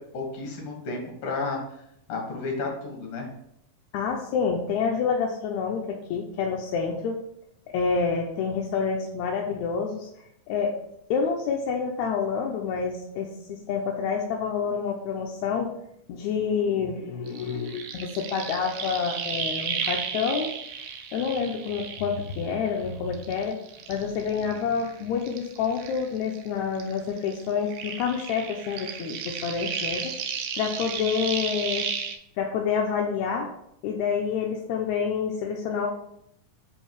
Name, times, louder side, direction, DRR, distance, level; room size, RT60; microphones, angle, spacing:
voice 1, 0.1-1.6 2.1-3.3, left 3 dB, 60° left, 0 dB, 2.3 m, -32 dB
voice 2, 3.9-7.2 7.7-10.1 10.5-10.8 11.1-15.7 16.1-20.5 21.1-23.6 23.9-30.1 30.6-31.9 32.4-33.5 33.8-35.9, left 6 dB, 80° left, 0 dB, 1.8 m, -28 dB
sound 1, 17.3-22.8 23.1-26.5 26.7-32.1, right 6 dB, 80° right, 1.5 m, -34 dB
4.9 x 4.5 x 4.6 m, 0.77 s
omnidirectional pair, 3.6 m